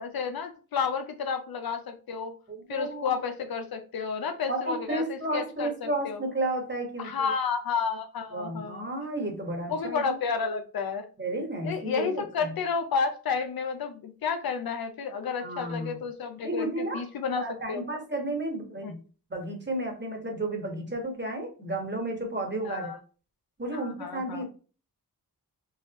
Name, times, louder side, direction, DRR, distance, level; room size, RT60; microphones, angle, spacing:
voice 1, 0.0-2.3 2.7-6.2 7.0-8.9 9.7-11.1 11.6-17.8 18.8-18.9 22.6-22.9 23.7-24.5, left 5 dB, 65° left, 7 dB, 0.6 m, -31 dB
voice 2, 2.5-3.2 4.5-7.3 8.3-10.2 11.2-12.5 15.4-16.0 16.4-17.0 17.4-19.0 19.3-22.9 23.6-24.5, right 1 dB, 25° right, 2 dB, 1.4 m, -32 dB
4.0 x 2.4 x 2.9 m, 0.38 s
cardioid pair, 45°, 39 cm